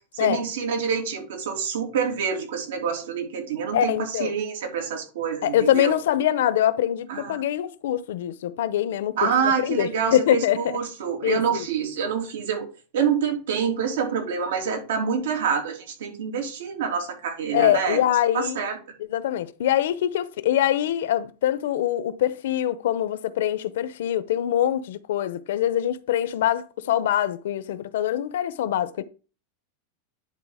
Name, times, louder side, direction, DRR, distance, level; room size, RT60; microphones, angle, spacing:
voice 1, 0.1-5.9 7.1-7.4 9.2-12.7 12.9-18.0 18.3-18.8, right 6 dB, 85° right, 3.0 m, -27 dB
voice 2, 3.7-4.3 5.4-10.8 11.2-11.7 17.5-18.6 19.1-29.0, left 11 dB, 70° left, 0.7 m, -24 dB
10.5 x 3.8 x 4.9 m
supercardioid pair, 180°, 0 cm